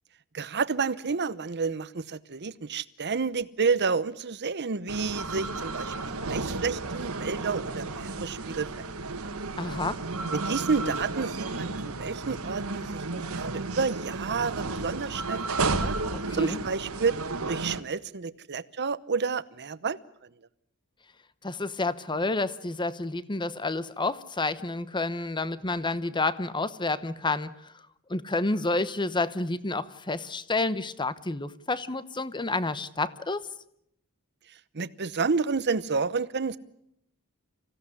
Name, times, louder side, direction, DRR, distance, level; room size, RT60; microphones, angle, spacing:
voice 1, 0.3-9.0 10.3-13.0 13.3-16.0 16.3-17.1 17.5-20.3 34.7-36.6, right 5 dB, 50° right, 0.9 m, -30 dB
sound 1, 4.9-17.8, right 3 dB, 70° right, 1.7 m, -33 dB
voice 2, 9.6-10.0 16.3-16.6 21.4-27.7 28.1-33.5, left 2 dB, 20° left, 1.0 m, -29 dB
26.5 x 16.5 x 9.8 m
head